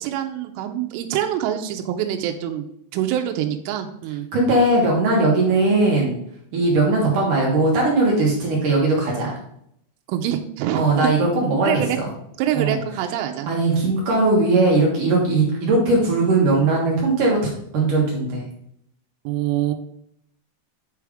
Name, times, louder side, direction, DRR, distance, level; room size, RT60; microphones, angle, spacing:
voice 1, 0.0-2.6 2.9-4.3 10.1-10.9 11.6-12.0 12.4-13.5 19.3-19.7, right 11 dB, 85° right, 5 dB, 3.1 m, -25 dB
voice 2, 4.3-6.2 6.5-9.4 10.7-12.1 12.5-12.8 13.5-17.4 17.7-18.5, right 2 dB, 65° right, -3 dB, 2.2 m, -19 dB
9.8 x 3.5 x 4.9 m, 0.71 s
omnidirectional pair, 5.7 m